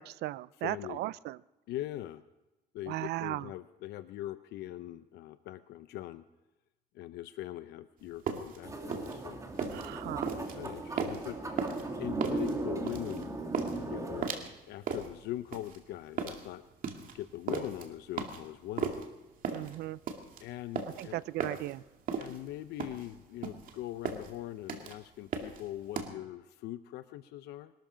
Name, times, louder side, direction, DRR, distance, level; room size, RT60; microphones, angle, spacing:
voice 1, 0.0-1.4 2.9-3.5 9.7-10.3 19.5-20.0 21.0-21.8, right 16 dB, 75° right, 20 dB, 0.5 m, -37 dB
voice 2, 0.6-1.0 1.7-2.2 2.7-6.2 6.9-9.4 10.6-11.4 12.0-13.4 13.7-14.4 14.7-16.6 17.1-18.9 20.4-21.2 22.1-27.7, left 14 dB, 80° left, 12 dB, 0.7 m, -41 dB
sound 1, 8.0-26.1, right 6 dB, 55° right, 2.3 m, -37 dB
sound 2, 8.6-14.3, right 2 dB, 20° right, 2.4 m, -37 dB
21.5 x 13.0 x 5.1 m, 1.0 s
cardioid pair, 110°, 17 cm